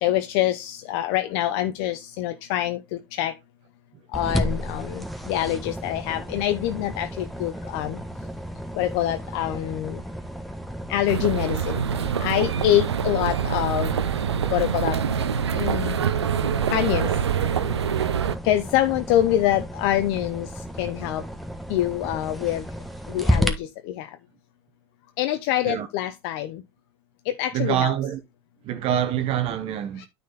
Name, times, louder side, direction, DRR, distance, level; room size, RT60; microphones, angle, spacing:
voice 1, 0.0-3.4 4.1-8.0 8.7-10.0 10.9-14.0 14.5-15.0 15.5-16.0 16.7-17.2 18.4-21.3 21.7-22.7 23.1-24.2 25.2-26.6 27.2-27.9 30.0-30.1, left 12 dB, 55° left, 0.8 m, -25 dB
sound 1, 4.1-23.5, equal, ahead, 1.4 m, -33 dB
sound 2, 11.1-18.4, right 8 dB, 85° right, 0.7 m, -25 dB
voice 2, 27.5-28.2 28.6-30.1, right 10 dB, 45° right, 1.2 m, -25 dB
9.3 x 4.3 x 4.0 m
hypercardioid pair, 95°, 14 cm